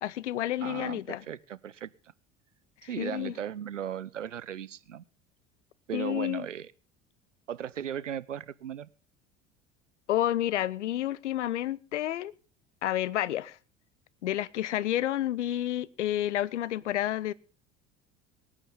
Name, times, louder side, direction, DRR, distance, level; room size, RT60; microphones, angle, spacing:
voice 1, 0.0-1.2 3.0-3.3 5.9-6.5 10.1-12.3 12.8-13.6 14.2-17.3, left 13 dB, 70° left, 0.8 m, -30 dB
voice 2, 0.6-1.9 2.8-5.0 5.9-6.7 7.5-8.9, right 9 dB, 80° right, 0.7 m, -37 dB
23.5 x 9.9 x 3.7 m
figure-of-eight pair, 65°, 36 cm